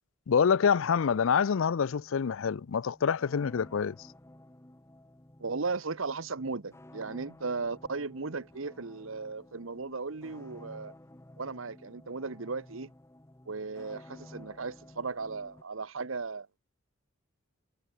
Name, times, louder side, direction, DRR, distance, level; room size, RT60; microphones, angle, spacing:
voice 1, 0.3-4.0, left 6 dB, 75° left, 0.5 m, -26 dB
sound 1, 1.9-15.6, left 1 dB, 15° left, 0.7 m, -53 dB
voice 2, 5.4-10.9 11.4-12.9 13.5-16.5, right 4 dB, 75° right, 1.0 m, -36 dB
head